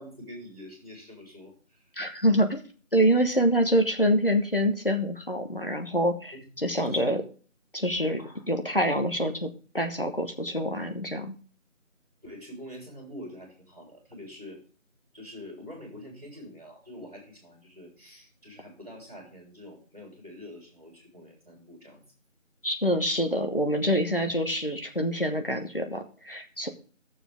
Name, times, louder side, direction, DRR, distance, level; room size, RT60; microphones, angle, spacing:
voice 1, 0.0-1.9 6.3-7.1 8.2-8.4 12.2-14.6 15.1-22.0, left 1 dB, 30° right, 1 dB, 3.7 m, -45 dB
voice 2, 2.0-2.6 2.9-7.2 7.7-8.2 8.5-11.3 22.6-26.7, equal, 45° left, 5 dB, 1.2 m, -26 dB
12.0 x 7.0 x 3.5 m, 0.39 s
figure-of-eight pair, 175°, 40 cm